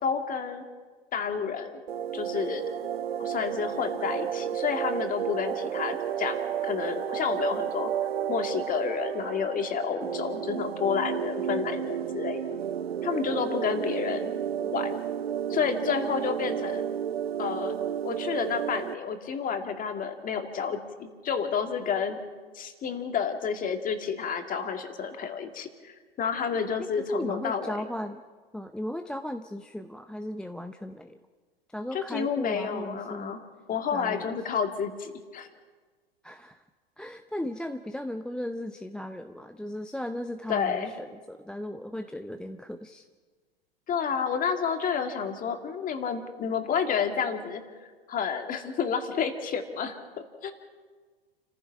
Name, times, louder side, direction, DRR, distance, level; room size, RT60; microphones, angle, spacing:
voice 1, 0.0-0.6 1.1-1.7 2.1-2.8 3.2-7.9 8.3-12.4 13.0-14.3 14.6-15.0 15.5-16.8 17.4-17.8 18.0-22.2 22.5-27.8 31.9-33.4 33.7-35.5 40.5-40.9 43.9-47.6 48.1-50.0 50.4-50.5, left 6 dB, 25° left, 6 dB, 2.3 m, -30 dB
sound 1, 1.9-18.9, right 9 dB, 80° right, 0.5 m, -32 dB
voice 2, 26.8-28.2 28.5-31.2 31.7-33.3 33.9-34.3 36.2-36.6 37.0-43.0, left 1 dB, 5° left, 7 dB, 0.6 m, -36 dB
30.0 x 15.0 x 5.9 m, 1.5 s
figure-of-eight pair, 95°, 30 cm